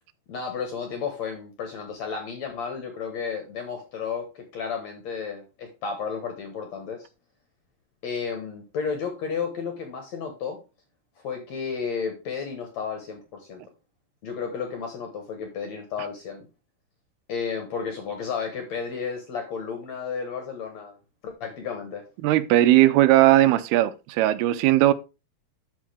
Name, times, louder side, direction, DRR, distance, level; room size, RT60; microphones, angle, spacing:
voice 1, 0.3-7.1 8.0-10.6 11.2-13.6 14.2-16.4 17.3-21.0 21.2-22.0, left 6 dB, 65° left, 1.9 m, -32 dB
voice 2, 22.2-24.9, right 15 dB, 85° right, 2.6 m, -18 dB
12.5 x 4.6 x 3.4 m
omnidirectional pair, 4.6 m